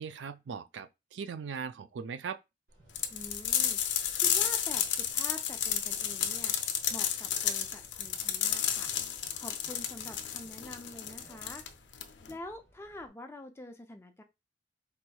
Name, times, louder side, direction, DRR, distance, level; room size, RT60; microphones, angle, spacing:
voice 1, 0.0-2.4, right 6 dB, 75° right, 0.4 m, -39 dB
sound 1, 2.7-13.1, right 1 dB, 55° right, 2.3 m, -60 dB
sound 2, 3.0-12.3, left 9 dB, 80° left, 0.5 m, -31 dB
voice 2, 3.1-3.8 4.1-6.6 6.9-8.9 9.3-11.6 12.3-14.2, left 1 dB, 15° left, 0.5 m, -46 dB
4.2 x 3.0 x 2.3 m
head